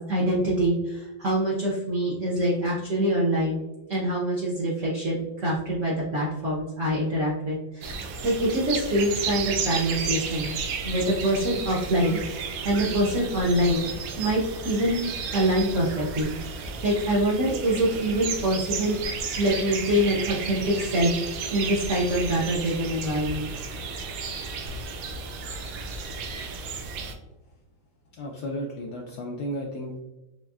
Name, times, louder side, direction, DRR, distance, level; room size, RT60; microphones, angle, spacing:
voice 1, 0.0-10.6 10.8-13.9 14.2-16.4 16.8-19.1 19.3-21.1 21.5-23.5, right 1 dB, 60° right, -5 dB, 0.8 m, -25 dB
sound 1, 7.8-27.1, right 5 dB, 80° right, 1.3 m, -33 dB
voice 2, 28.2-30.0, equal, 75° left, -1 dB, 1.0 m, -33 dB
4.4 x 3.1 x 2.3 m, 0.99 s
omnidirectional pair, 2.2 m